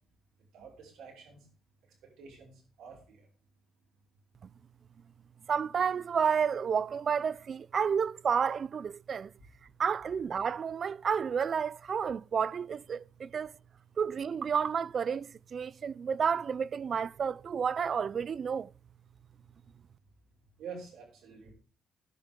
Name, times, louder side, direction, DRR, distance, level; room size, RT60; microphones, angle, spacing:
voice 1, 0.5-1.5 2.2-2.5 2.8-3.2 20.6-21.5, right 5 dB, 85° right, 5.5 m, -47 dB
voice 2, 5.5-9.3 9.8-13.5 14.0-18.7, right 7 dB, 50° right, 0.4 m, -31 dB
18.5 x 6.4 x 3.7 m
cardioid pair, 90°, 0 cm